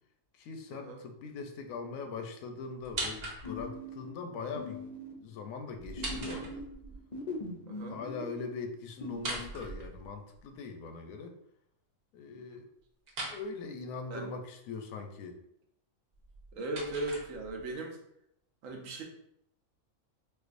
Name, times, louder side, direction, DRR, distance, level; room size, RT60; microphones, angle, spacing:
voice 1, 0.3-4.8 5.2-6.7 7.9-11.4 12.1-12.7 13.3-15.4, left 4 dB, 85° left, 5 dB, 1.0 m, -41 dB
sound 1, 2.8-3.8 5.8-7.0 9.1-10.4 13.1-13.4 16.1-17.7, right 2 dB, 55° right, 1.0 m, -40 dB
sound 2, 3.4-5.6 6.0-9.5, left 1 dB, 65° left, 0.4 m, -42 dB
voice 2, 7.7-8.0 12.5-12.6 14.1-14.3 16.6-18.0 18.6-19.0, right 2 dB, 75° right, 1 dB, 1.0 m, -38 dB
4.4 x 2.3 x 2.5 m, 0.74 s
omnidirectional pair, 1.4 m